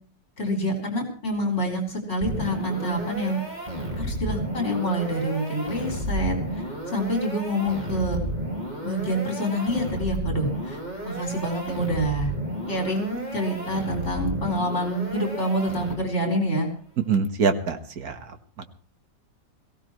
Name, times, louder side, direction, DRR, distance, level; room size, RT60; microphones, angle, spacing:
voice 1, 0.4-3.4 3.9-8.2 8.8-12.3 12.7-16.7, equal, 35° left, 2 dB, 4.7 m, -27 dB
sound 1, 2.2-16.3, right 1 dB, 20° right, 3.9 m, -32 dB
voice 2, 17.1-18.2, right 5 dB, 55° right, 8 dB, 1.7 m, -24 dB
22.0 x 16.0 x 3.1 m, 0.42 s
omnidirectional pair, 2.0 m